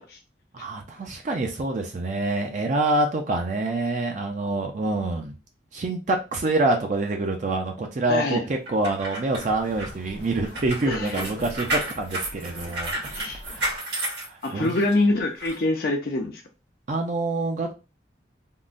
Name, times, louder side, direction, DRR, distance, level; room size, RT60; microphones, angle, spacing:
voice 1, 0.5-5.3 5.7-8.4 8.7-14.0 14.3-14.7 16.9-17.7, right 2 dB, 40° right, 3 dB, 0.4 m, -26 dB
voice 2, 8.1-8.5 10.8-11.5 13.1-13.4 14.4-16.4, left 2 dB, 55° left, 2 dB, 0.4 m, -25 dB
sound 1, 8.7-14.9 15.4-15.6, right 1 dB, 70° right, 1.3 m, -32 dB
sound 2, 9.4-13.8, left 1 dB, 90° left, 0.9 m, -43 dB
3.6 x 2.1 x 2.4 m, 0.29 s
head